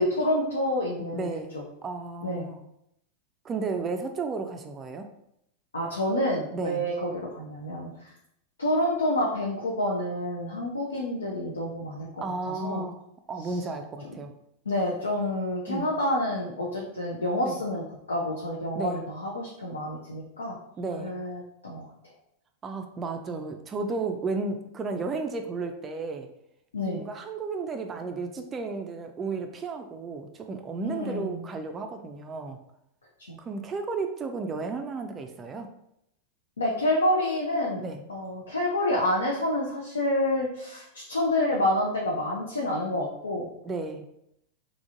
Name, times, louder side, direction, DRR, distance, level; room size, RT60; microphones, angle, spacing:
voice 1, 0.0-1.3 1.5-1.6 2.2-2.5 5.7-8.1 8.6-12.8 13.5-13.6 14.7-20.6 21.0-21.8 26.7-27.0 30.8-31.5 33.3-33.4 36.6-37.8 38.1-43.5, left 1 dB, 75° left, -2 dB, 0.6 m, -28 dB
voice 2, 1.1-1.5 1.8-2.6 3.4-5.1 6.5-6.8 12.2-13.0 13.3-14.3 15.7-15.9 17.4-17.6 18.7-19.1 20.8-21.2 22.6-26.3 26.9-32.6 33.4-35.7 37.8-38.0 43.6-44.0, right 4 dB, 25° right, 5 dB, 0.3 m, -33 dB
3.6 x 3.1 x 2.5 m, 0.78 s
figure-of-eight pair, 90°, 0 cm